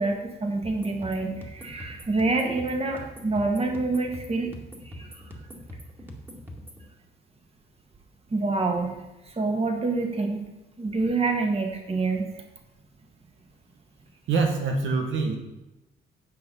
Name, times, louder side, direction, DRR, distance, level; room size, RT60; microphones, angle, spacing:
voice 1, 0.0-4.5 4.8-5.2 8.3-10.4 10.8-12.4, right 3 dB, 30° right, 3 dB, 1.8 m, -27 dB
sound 1, 0.6-6.8, equal, 10° right, 2.0 m, -43 dB
voice 2, 14.3-15.4, right 4 dB, 75° right, 2 dB, 1.4 m, -24 dB
9.2 x 5.8 x 5.4 m, 0.99 s
cardioid pair, 90°, 20 cm